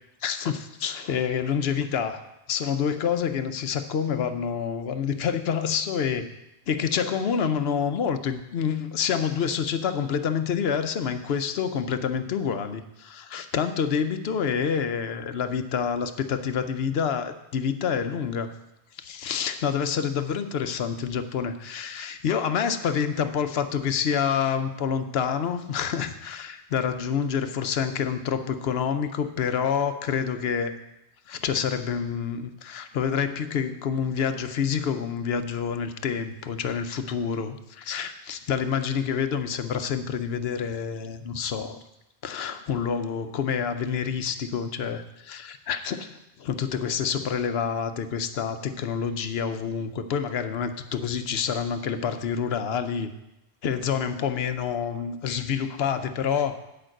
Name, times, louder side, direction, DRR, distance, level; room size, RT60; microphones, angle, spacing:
voice 1, 0.2-6.3 6.7-18.5 19.0-30.7 31.3-41.8 42.2-53.1 53.6-56.6, left 7 dB, 65° left, 9 dB, 0.9 m, -27 dB
8.7 x 5.2 x 7.6 m, 0.90 s
omnidirectional pair, 1.2 m